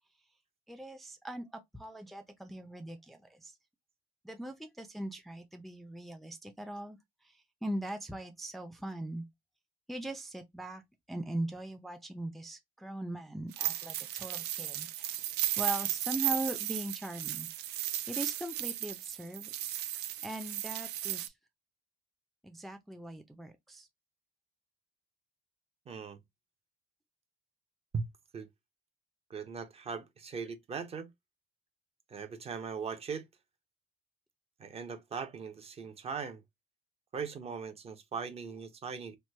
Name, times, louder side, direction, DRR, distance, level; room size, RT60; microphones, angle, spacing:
voice 1, 0.7-3.5 4.2-7.0 7.6-9.2 9.9-10.8 11.1-15.2 15.6-17.5 18.1-19.5 20.2-21.3 22.4-23.9, right 1 dB, ahead, 0.5 m, -40 dB
sound 1, 13.5-21.3, right 13 dB, 80° right, 0.5 m, -35 dB
voice 2, 25.9-26.2 27.9-28.0 28.3-28.5 29.3-31.1 32.1-33.3 34.6-36.4 37.1-39.2, right 5 dB, 35° right, 0.7 m, -39 dB
3.0 x 2.2 x 3.2 m
cardioid pair, 110°, 17 cm